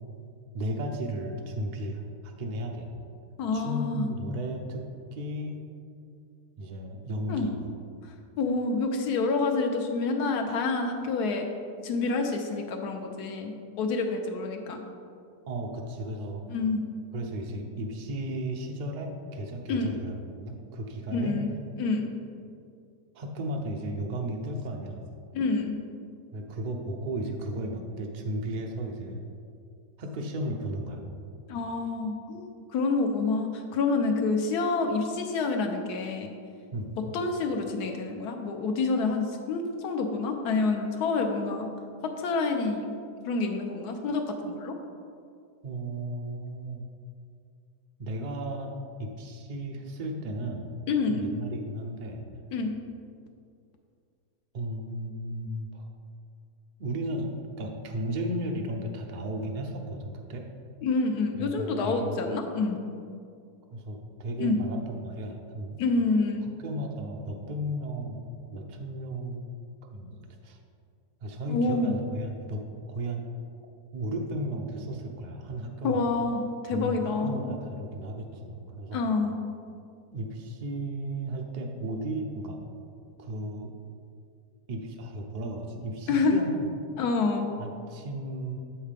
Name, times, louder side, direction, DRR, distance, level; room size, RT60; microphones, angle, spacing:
voice 1, 0.5-2.9 3.5-4.8 5.1-5.6 6.6-7.6 15.5-16.4 17.1-21.4 23.1-25.0 26.3-29.2 30.0-31.0 36.7-36.9 45.6-46.8 48.0-48.7 49.0-50.7 51.1-52.2 54.5-55.9 56.8-57.3 57.6-60.5 61.4-62.2 63.7-65.8 66.4-69.4 69.9-70.2 70.4-70.6 71.2-73.2 73.9-76.0 76.7-79.0 80.1-82.6 83.2-83.7 84.7-86.7 87.6-88.6, right 1 dB, 85° right, 2 dB, 0.4 m, -34 dB
voice 2, 3.4-4.1 7.3-7.5 8.4-11.5 11.8-13.5 13.8-14.8 16.5-16.8 19.7-19.9 21.1-21.5 21.8-22.1 25.3-25.7 31.5-36.3 37.1-41.7 42.0-42.9 43.2-44.8 50.9-51.3 52.5-52.7 60.8-62.8 64.4-64.6 65.8-66.5 71.5-71.9 75.8-77.5 78.9-79.3 86.1-86.4 87.0-87.5, left 3 dB, 85° left, 4 dB, 1.2 m, -27 dB
7.3 x 5.7 x 3.4 m, 2.3 s
omnidirectional pair, 1.6 m